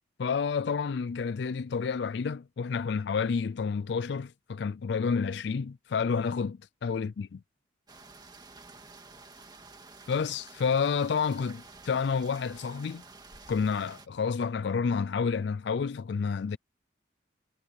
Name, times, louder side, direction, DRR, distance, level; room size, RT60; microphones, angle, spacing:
voice 1, 0.2-7.4 10.1-13.0 13.5-16.6, left 5 dB, 60° left, 0.4 m, -29 dB
sound 1, 7.9-14.1, right 3 dB, 20° right, 1.9 m, -51 dB
head